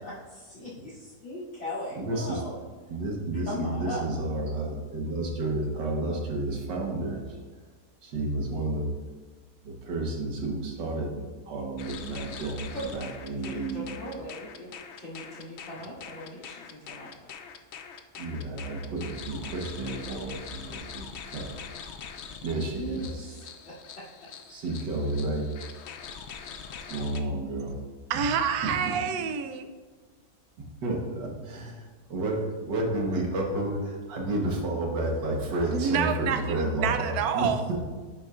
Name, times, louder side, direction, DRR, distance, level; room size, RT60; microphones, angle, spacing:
voice 1, 0.0-2.6 3.3-4.0 12.7-12.8 13.4-17.1 19.9-20.0 22.8-24.3, left 1 dB, 40° left, -8 dB, 2.8 m, -39 dB
voice 2, 2.0-2.4 2.9-7.4 8.0-8.9 9.6-13.9 18.2-21.5 22.4-23.4 24.5-25.5 26.9-27.8 28.1-28.3 28.6-29.0 30.8-37.8, right 2 dB, 90° right, 0 dB, 1.9 m, -31 dB
sound 1, 11.8-27.2, left 7 dB, 85° left, 0.6 m, -43 dB
voice 3, 28.1-29.7 35.7-37.6, right 7 dB, 70° right, 8 dB, 1.0 m, -28 dB
10.0 x 6.6 x 2.5 m, 1.4 s
omnidirectional pair, 1.9 m